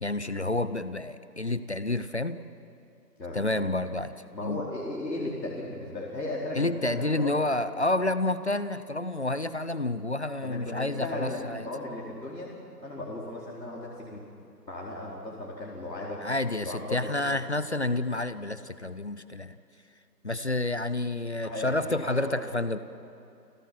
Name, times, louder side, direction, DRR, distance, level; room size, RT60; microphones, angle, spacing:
voice 1, 0.0-2.4 3.3-4.1 4.4-4.6 6.5-11.7 16.2-19.6 20.2-22.8, left 2 dB, 45° left, 13 dB, 0.7 m, -29 dB
voice 2, 3.2-3.6 4.3-7.4 10.4-14.2 14.7-16.2 16.6-17.0 17.3-17.4 21.4-22.4, left 2 dB, 85° left, -4 dB, 4.7 m, -36 dB
30.0 x 15.5 x 7.6 m, 2.7 s
figure-of-eight pair, 170°, 49 cm